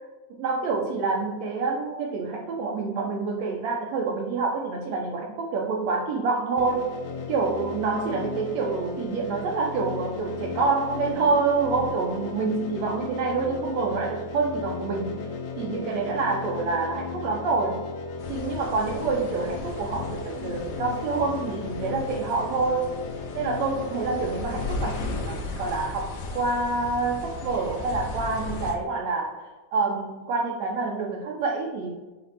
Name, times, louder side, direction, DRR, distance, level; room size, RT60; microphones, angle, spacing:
voice 1, 0.4-7.0 7.3-15.3 15.6-17.9 18.3-22.9 23.3-32.1, right 4 dB, 85° right, 0 dB, 1.5 m, -27 dB
sound 1, 6.6-25.2, left 5 dB, 85° left, 2.3 m, -36 dB
sound 2, 18.2-28.7, left 3 dB, 65° left, 2.1 m, -36 dB
7.7 x 2.6 x 5.4 m, 1.2 s
omnidirectional pair, 3.8 m